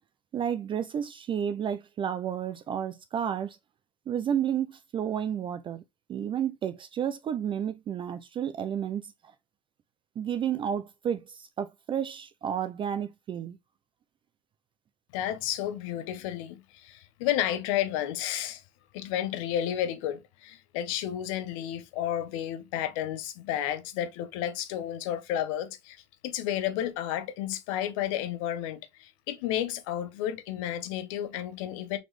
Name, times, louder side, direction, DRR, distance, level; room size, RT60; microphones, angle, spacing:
voice 1, 0.3-3.6 4.1-5.8 6.1-9.1 10.2-13.6, right 9 dB, 30° right, 0.3 m, -31 dB
voice 2, 15.1-18.6 18.9-32.0, left 11 dB, 80° left, 0.8 m, -32 dB
4.0 x 3.1 x 3.0 m
supercardioid pair, 105°, 16 cm